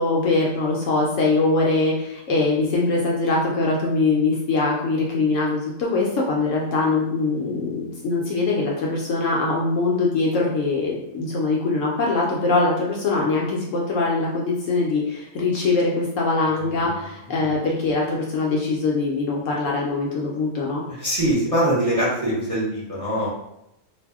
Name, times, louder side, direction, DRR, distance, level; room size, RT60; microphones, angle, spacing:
voice 1, 0.0-20.8, left 3 dB, 65° left, -3 dB, 0.8 m, -22 dB
voice 2, 16.6-17.0 17.4-17.5 20.9-23.3, right 1 dB, 35° right, -8 dB, 0.6 m, -23 dB
2.6 x 2.0 x 3.4 m, 0.83 s
omnidirectional pair, 1.6 m